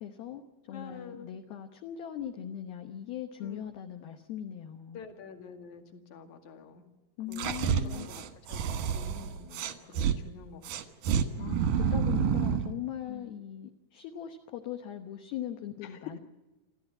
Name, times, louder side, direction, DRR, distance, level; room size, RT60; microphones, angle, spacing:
voice 1, 0.0-5.0 7.2-8.1 11.3-16.2, left 10 dB, 70° left, 5 dB, 2.4 m, -40 dB
voice 2, 0.7-1.3 3.4-3.7 4.9-6.9 7.3-10.7 13.1-13.3 15.8-16.2, left 5 dB, 50° left, 5 dB, 2.6 m, -47 dB
sound 1, 7.3-10.2 10.6-12.7, right 7 dB, 70° right, 2.0 m, -29 dB
27.5 x 14.5 x 8.9 m, 1.1 s
omnidirectional pair, 5.8 m